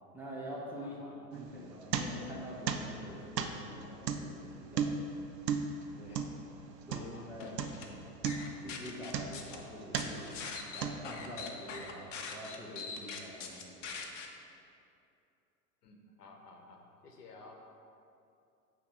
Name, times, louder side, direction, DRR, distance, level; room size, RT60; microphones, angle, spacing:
voice 1, 0.1-1.0 1.3-4.9 5.9-6.2 6.9-8.1 8.6-10.3 10.7-13.8 17.4-17.5, equal, 5° right, -6 dB, 0.6 m, -46 dB
voice 2, 0.7-1.3 6.1-6.4 6.9-7.3 10.7-10.8 15.8-17.5, left 3 dB, 70° left, 2 dB, 1.0 m, -55 dB
sound 1, 1.3-2.4 2.7-7.3 7.6-7.9 8.2-9.5 9.9-10.3 10.8-11.4, right 6 dB, 80° right, 0.6 m, -36 dB
sound 2, 7.4-7.9 8.3-9.6 9.9-14.3, left 5 dB, 50° left, 0.8 m, -43 dB
8.4 x 3.0 x 4.8 m, 2.7 s
figure-of-eight pair, 95°, 48 cm